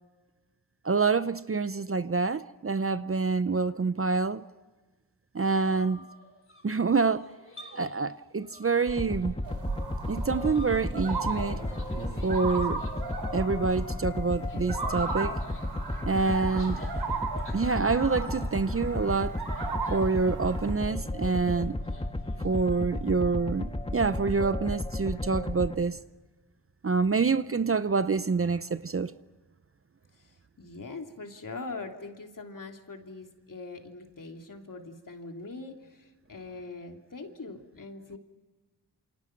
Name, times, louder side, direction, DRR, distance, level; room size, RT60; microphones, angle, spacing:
voice 1, 0.8-4.4 5.3-6.0 6.6-7.3 7.7-9.3 10.1-11.6 12.2-12.8 13.3-15.4 16.1-16.8 17.5-19.4 19.9-21.8 22.4-26.0 26.8-29.1, right 4 dB, 35° right, 0.7 m, -27 dB
sound 1, 5.5-8.1 8.4-9.6 9.9-21.2 21.5-22.9, left 3 dB, 30° left, 3.1 m, -51 dB
sound 2, 8.9-25.8, left 1 dB, 15° left, 1.6 m, -33 dB
sound 3, 9.4-20.7, right 4 dB, 90° right, 4.4 m, -37 dB
voice 2, 30.6-38.2, left 3 dB, 55° left, 3.1 m, -42 dB
28.5 x 27.5 x 6.0 m
wide cardioid pair, 90°, 39 cm